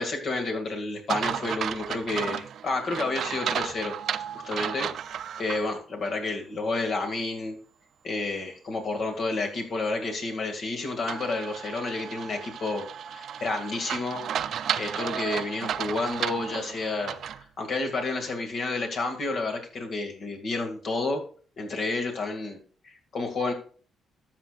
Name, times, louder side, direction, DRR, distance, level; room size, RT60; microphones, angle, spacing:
voice 1, 0.0-3.9 4.4-7.6 8.0-14.2 14.7-21.2 21.6-22.6 22.8-23.5, left 3 dB, 55° left, 3 dB, 2.1 m, -30 dB
sound 1, 1.1-5.6 6.0-6.1 11.1-17.4, right 9 dB, 65° right, 0.5 m, -33 dB
13.0 x 6.9 x 2.4 m, 0.42 s
cardioid pair, 90°, 0 cm